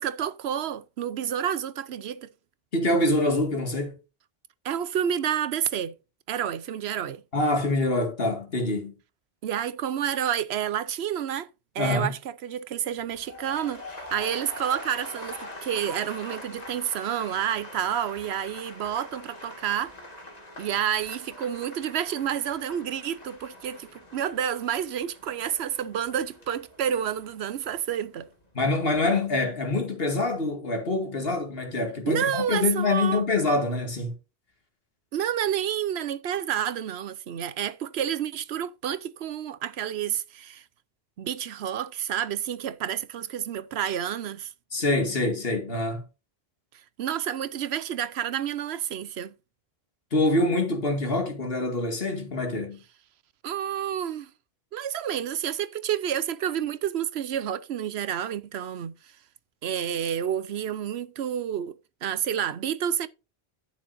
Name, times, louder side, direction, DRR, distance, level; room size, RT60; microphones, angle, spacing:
voice 1, 0.0-2.3 4.6-5.9 6.3-7.2 9.4-11.5 11.7-19.9 20.6-28.3 32.0-33.2 35.1-40.6 41.2-44.5 47.0-49.3 53.4-54.3 54.7-58.9 59.6-63.1, right 9 dB, 85° right, 1.0 m, -29 dB
voice 2, 2.7-4.0 7.3-8.9 11.8-12.1 28.5-34.1 44.7-46.0 50.1-52.8, left 2 dB, 70° left, 2.3 m, -25 dB
sound 1, 13.0-29.1 29.4-29.8, left 1 dB, 40° left, 2.3 m, -44 dB
11.0 x 9.4 x 2.6 m
omnidirectional pair, 1.0 m